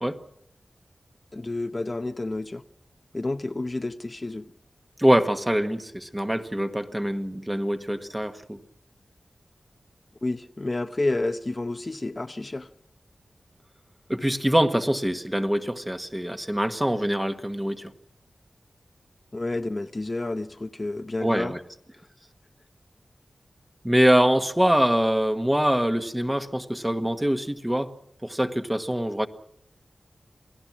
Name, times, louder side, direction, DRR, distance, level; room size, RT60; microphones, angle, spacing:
voice 1, 1.3-2.6 3.1-4.4 10.2-12.7 19.3-21.5, left 2 dB, 35° left, 8 dB, 0.8 m, -30 dB
voice 2, 5.0-8.6 14.1-17.9 21.2-21.6 23.8-27.9 28.2-29.3, equal, 10° right, 7 dB, 1.5 m, -24 dB
28.0 x 18.5 x 6.1 m, 0.71 s
wide cardioid pair, 75°, 0 cm